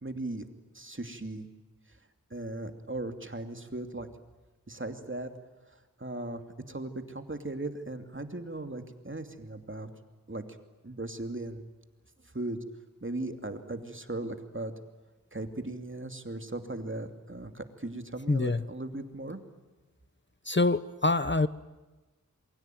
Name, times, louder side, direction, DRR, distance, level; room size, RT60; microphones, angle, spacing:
voice 1, 0.0-0.5 0.7-1.5 2.3-4.1 4.7-5.3 6.0-6.4 6.7-9.9 10.3-10.4 10.8-11.6 12.3-12.6 13.0-14.7 15.3-19.4, right 2 dB, 35° right, 7 dB, 2.8 m, -37 dB
voice 2, 18.3-18.6 20.5-21.5, left 3 dB, 35° left, 14 dB, 0.9 m, -25 dB
27.5 x 23.0 x 9.3 m, 1.2 s
wide cardioid pair, 50°, 33 cm